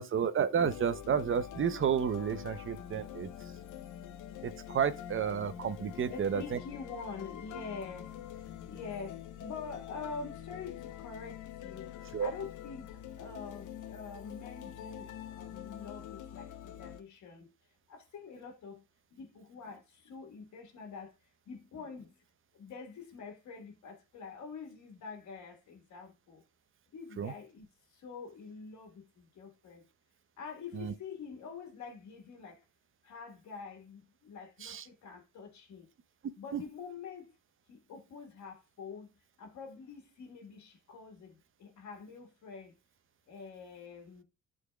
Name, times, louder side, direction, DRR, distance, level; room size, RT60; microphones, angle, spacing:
voice 1, 0.0-3.3 4.4-6.6 12.1-12.3 27.2-27.3 30.7-30.9 34.6-34.8 36.5-36.6, right 7 dB, 45° right, 0.8 m, -31 dB
sound 1, 0.7-17.0, left 10 dB, 80° left, 0.7 m, -46 dB
voice 2, 6.1-11.9 12.2-17.5 17.9-18.8 19.1-21.1 21.5-22.2 22.5-26.4 26.9-29.9 30.4-32.6 33.0-35.9 36.4-37.3 37.7-39.1 39.4-42.8 43.3-44.2, left 5 dB, 65° left, 1.7 m, -46 dB
11.5 x 3.9 x 2.3 m
cardioid pair, 90°, 30 cm